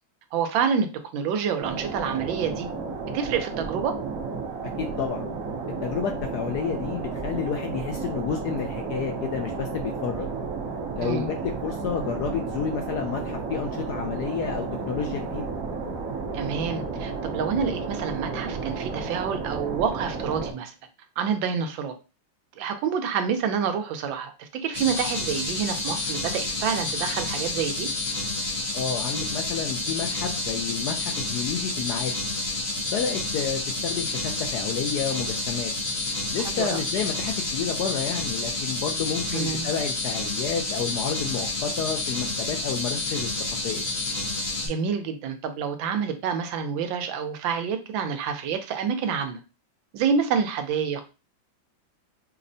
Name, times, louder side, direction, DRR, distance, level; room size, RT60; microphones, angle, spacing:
voice 1, 0.3-0.9 1.1-2.7 3.1-4.0 11.0-11.3 16.3-20.7 21.2-21.9 22.6-27.9 36.4-37.0 39.3-39.7 44.6-49.4 49.9-51.1, right 6 dB, 80° right, 7 dB, 1.3 m, -28 dB
sound 1, 1.6-20.5, right 4 dB, 60° right, 0.9 m, -32 dB
voice 2, 4.8-5.3 5.8-10.3 10.9-15.4 28.7-32.2 32.9-35.7 36.3-43.3 43.6-43.8, left 7 dB, 75° left, 3 dB, 0.9 m, -30 dB
sound 2, 24.7-44.7, left 2 dB, 50° left, 1.2 m, -29 dB
5.3 x 2.1 x 2.6 m, 0.31 s
omnidirectional pair, 2.1 m